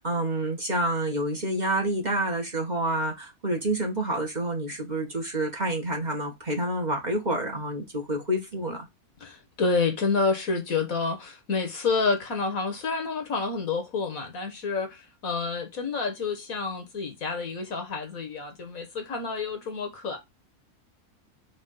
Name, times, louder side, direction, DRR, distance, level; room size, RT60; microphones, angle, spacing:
voice 1, 0.0-8.9, right 1 dB, 30° right, 1.6 m, -28 dB
voice 2, 9.2-20.2, left 4 dB, 65° left, 1.8 m, -29 dB
5.7 x 3.1 x 5.5 m
omnidirectional pair, 1.6 m